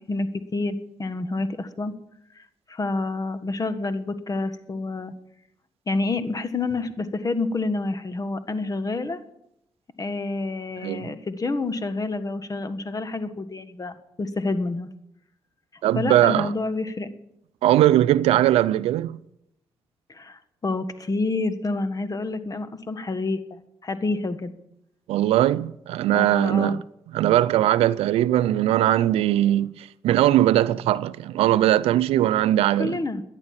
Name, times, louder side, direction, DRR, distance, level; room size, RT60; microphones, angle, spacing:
voice 1, 0.0-1.9 2.3-5.1 5.9-9.2 10.0-14.9 16.0-17.1 20.1-24.5 26.1-26.8 32.8-33.2, left 3 dB, 35° left, 1.6 m, -28 dB
voice 2, 15.8-16.5 17.6-19.2 25.1-26.8 27.1-33.0, right 13 dB, 85° right, 0.5 m, -20 dB
14.0 x 10.5 x 7.5 m
supercardioid pair, 60°, 10 cm